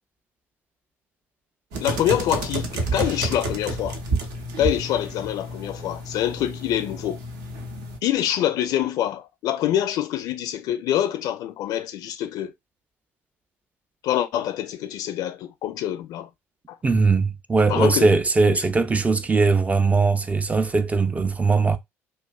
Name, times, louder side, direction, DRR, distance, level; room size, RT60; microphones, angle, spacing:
sound 1, 1.7-8.0, right 2 dB, 65° right, 0.6 m, -30 dB
voice 1, 1.8-4.0 4.6-7.2 8.0-12.5 14.0-16.3 16.7-16.8 17.7-18.1 18.4-18.6, left 11 dB, 55° left, 0.4 m, -25 dB
voice 2, 16.8-21.8, right 4 dB, 20° right, 0.4 m, -20 dB
2.4 x 2.3 x 2.3 m
figure-of-eight pair, 55°, 8 cm